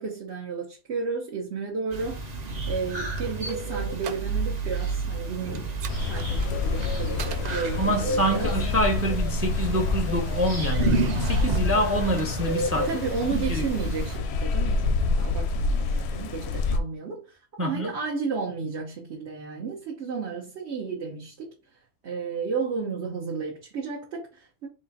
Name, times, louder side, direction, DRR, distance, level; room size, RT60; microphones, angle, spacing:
voice 1, 0.0-2.4 2.7-5.8 6.1-8.5 12.8-24.7, right 5 dB, 60° right, 1.1 m, -33 dB
sound 1, 1.9-14.2, right 2 dB, 35° right, 0.8 m, -31 dB
sound 2, 2.9-4.6 4.9-5.1 5.5-8.3 9.2-10.1 10.6-12.9, right 5 dB, 80° right, 0.3 m, -38 dB
sound 3, 5.9-16.8, left 4 dB, 65° left, 0.7 m, -28 dB
voice 2, 7.8-12.9 13.3-13.6 17.6-17.9, right 1 dB, 15° right, 0.5 m, -26 dB
4.1 x 2.7 x 3.8 m
omnidirectional pair, 1.3 m